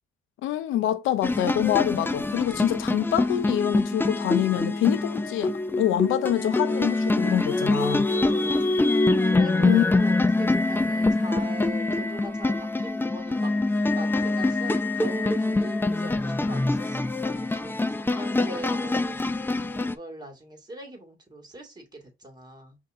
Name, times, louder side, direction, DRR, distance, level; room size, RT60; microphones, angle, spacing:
voice 1, 0.4-5.5 5.8-8.1 9.6-9.8, left 12 dB, 85° left, 0.6 m, -25 dB
sound 1, 1.2-19.9, left 2 dB, 10° left, 0.5 m, -25 dB
voice 2, 8.1-9.0 9.3-22.8, right 1 dB, 20° right, 2.1 m, -41 dB
5.4 x 2.7 x 3.6 m
cardioid pair, 90°, 20 cm